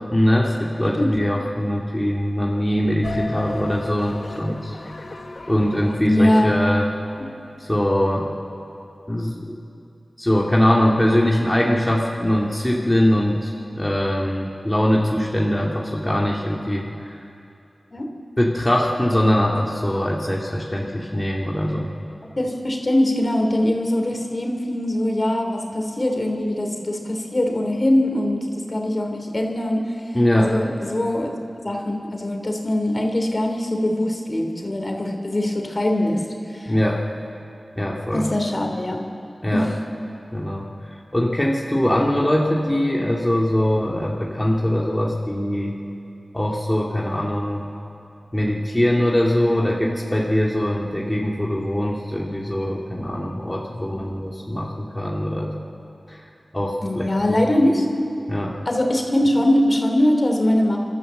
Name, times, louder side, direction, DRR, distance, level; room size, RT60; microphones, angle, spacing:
voice 1, 0.1-4.8 5.5-6.9 7.6-8.3 9.1-9.6 10.2-17.2 18.4-21.9 30.1-30.5 36.7-37.0 37.8-38.3 39.4-39.7 40.3-45.8 46.3-47.7 48.3-55.5 56.1-56.2 56.5-57.4 58.3-58.6, left 1 dB, 15° left, -3 dB, 2.4 m, -22 dB
sound 1, 3.0-7.3, left 2 dB, 65° left, 1.4 m, -35 dB
voice 2, 6.1-6.5 17.9-18.1 22.4-30.1 30.4-31.4 31.6-36.7 38.1-39.0 39.5-39.7 49.3-49.6 56.8-57.9 58.6-60.8, left 1 dB, 45° left, 3 dB, 3.3 m, -22 dB
27.5 x 12.5 x 7.8 m, 2.6 s
cardioid pair, 40°, 0 cm